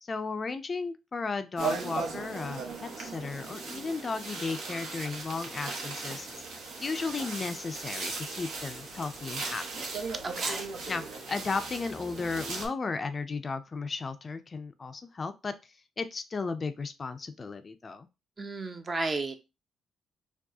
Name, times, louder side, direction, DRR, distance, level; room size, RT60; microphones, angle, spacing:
voice 1, 0.0-6.4 6.8-9.9 10.9-18.1, left 4 dB, 35° left, 10 dB, 0.3 m, -35 dB
sound 1, 1.6-12.7, right 4 dB, 80° right, 1.1 m, -37 dB
voice 2, 10.2-10.7 18.4-19.3, right 3 dB, 30° right, 7 dB, 0.6 m, -33 dB
4.5 x 2.3 x 2.7 m, 0.27 s
cardioid pair, 90°, 0 cm